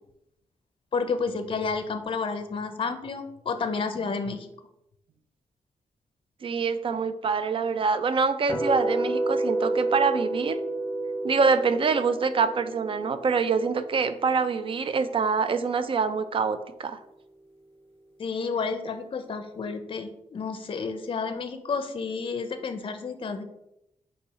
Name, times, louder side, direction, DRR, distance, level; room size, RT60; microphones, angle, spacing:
voice 1, 0.9-4.5 18.2-23.4, left 4 dB, 45° left, 8 dB, 0.5 m, -31 dB
voice 2, 6.4-10.6 11.2-17.0, right 5 dB, 45° right, 11 dB, 0.4 m, -25 dB
sound 1, 8.5-14.6, right 2 dB, 20° left, 0.9 m, -30 dB
4.5 x 2.7 x 4.1 m, 0.84 s
wide cardioid pair, 115°, 13 cm